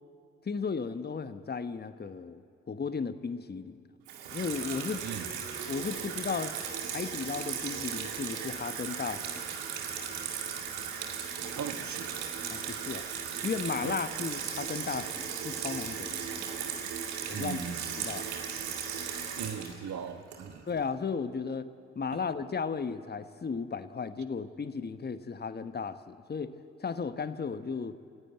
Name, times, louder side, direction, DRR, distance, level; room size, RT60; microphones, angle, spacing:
voice 1, 0.4-3.8 4.3-5.0 5.7-6.5 6.9-9.5 12.5-13.1 13.4-16.5 17.3-17.6 18.0-18.3 20.7-21.7 21.9-28.0, left 5 dB, 25° left, 11 dB, 1.1 m, -35 dB
Water tap faucet / Sink (filling or washing), 4.1-20.8, right 7 dB, 75° right, 2.2 m, -37 dB
voice 2, 5.0-5.3 11.6-12.1 13.8-14.0 17.3-18.0 19.0-20.7 22.1-22.2, right 7 dB, 50° right, 9 dB, 1.6 m, -39 dB
29.0 x 15.5 x 8.0 m, 2.4 s
figure-of-eight pair, 40°, 36 cm